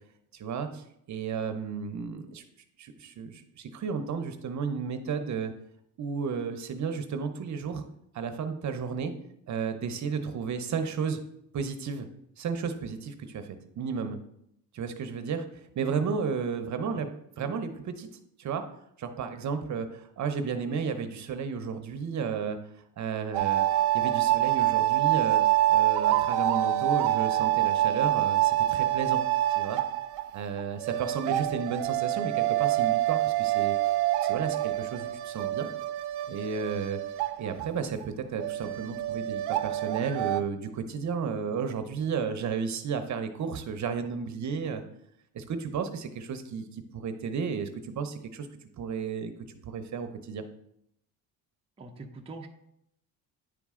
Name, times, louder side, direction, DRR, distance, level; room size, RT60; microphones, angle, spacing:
voice 1, 0.3-2.4 2.8-5.5 6.0-7.8 8.1-9.1 9.5-11.2 11.5-12.1 12.4-13.5 13.8-14.2 14.7-17.1 17.4-18.1 18.4-18.6 19.0-22.6 23.0-25.4 25.7-29.2 29.5-29.8 30.3-33.8 34.2-35.7 36.3-37.0 37.4-44.8 45.3-48.5 48.8-50.4, right 6 dB, 45° right, 8 dB, 0.8 m, -33 dB
sound 1, 23.3-37.7 38.0-38.1 38.4-40.4, right 14 dB, 80° right, 0.5 m, -26 dB
voice 2, 51.8-52.5, right 3 dB, 15° right, 1 dB, 0.6 m, -43 dB
9.8 x 4.2 x 3.6 m, 0.76 s
cardioid pair, 125°, 39 cm